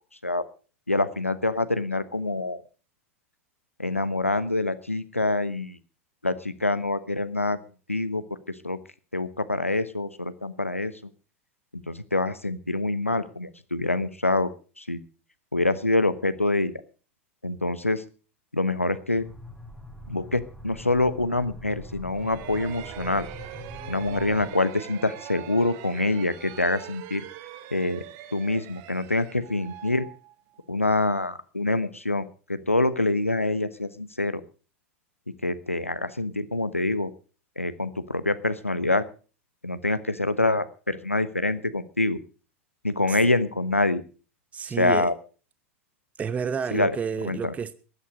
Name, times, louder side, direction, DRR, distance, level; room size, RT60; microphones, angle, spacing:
voice 1, 0.9-2.6 3.8-5.8 6.2-7.6 7.9-8.2 8.6-8.8 9.1-10.9 11.9-14.5 14.8-15.0 15.5-16.7 17.4-18.0 18.5-19.3 20.1-23.3 23.9-27.2 27.7-28.0 28.3-30.1 30.7-34.4 35.4-37.1 37.6-39.0 39.6-42.2 42.8-44.0 44.8-45.1 46.7-47.0 47.2-47.5, left 2 dB, 90° left, 1.0 m, -26 dB
sound 1, 19.1-24.5, left 1 dB, ahead, 2.1 m, -42 dB
sound 2, 22.1-30.8, right 12 dB, 45° right, 1.2 m, -42 dB
voice 2, 44.5-45.1 46.2-47.7, right 6 dB, 20° right, 0.8 m, -30 dB
15.5 x 11.0 x 5.1 m
figure-of-eight pair, 85°, 7 cm